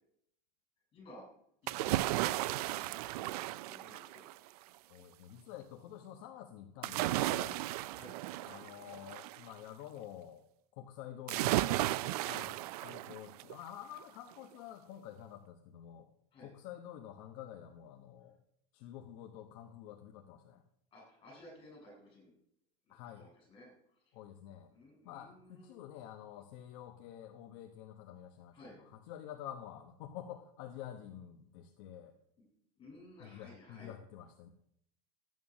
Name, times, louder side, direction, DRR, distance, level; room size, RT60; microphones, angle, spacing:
voice 1, 0.9-1.3 1.6-2.7 3.0-4.3 7.9-8.2 12.3-12.5 16.3-16.5 20.9-22.3 22.9-23.7 24.1-24.2 24.7-25.8 28.5-28.8 32.4-32.5 32.8-33.9, left 1 dB, 25° left, -1 dB, 6.9 m, -56 dB
sound 1, 1.7-4.5 6.8-9.4 11.3-13.6 14.0-14.1, right 16 dB, 80° right, 0.5 m, -35 dB
voice 2, 4.9-7.6 8.4-10.4 10.8-11.9 12.2-12.5 12.8-16.1 16.4-18.4 18.7-20.6 22.9-23.3 24.1-24.7 25.0-32.1 33.2-34.5, left 11 dB, 55° left, 4 dB, 1.1 m, -49 dB
13.0 x 9.5 x 6.3 m, 0.73 s
supercardioid pair, 165°, 19 cm